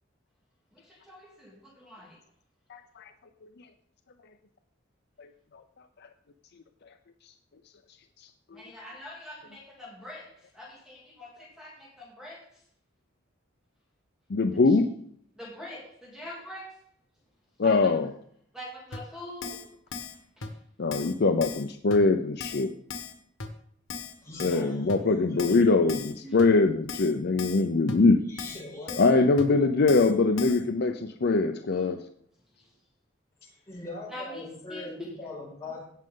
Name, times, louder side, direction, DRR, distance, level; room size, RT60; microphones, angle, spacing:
voice 1, 0.7-2.2 8.5-12.5 14.7-14.8 15.4-16.8 17.6-17.9 18.5-19.6 20.4-20.5 24.5-24.7 25.5-25.6 26.2-26.4 31.7-31.9 34.1-34.8, left 1 dB, 5° right, -4 dB, 2.3 m, -44 dB
voice 2, 2.7-3.0 5.2-5.3 8.5-8.6 14.3-14.9 17.6-18.1 20.8-22.7 24.4-28.2 29.0-32.0, left 3 dB, 55° left, 7 dB, 0.6 m, -23 dB
Keyboard (musical), 18.9-19.0 19.4-19.6 19.9-20.1 20.4-20.5 20.9-21.1 21.4-21.6 21.9-22.0 22.4-22.6 22.9-23.1 23.4-23.5 23.9-24.1 24.4-24.6 24.9-25.0 25.4-25.6 25.9-26.1 26.4-26.5 26.9-27.1 27.4-27.6 27.9-28.0 28.4-28.6 28.9-29.1 29.4-29.5 29.9-30.1 30.4-30.6, left 5 dB, 85° left, 1.5 m, -37 dB
voice 3, 24.2-26.0 28.3-29.0 33.4-35.9, left 2 dB, 15° left, -6 dB, 5.5 m, -42 dB
17.0 x 6.4 x 3.8 m, 0.63 s
head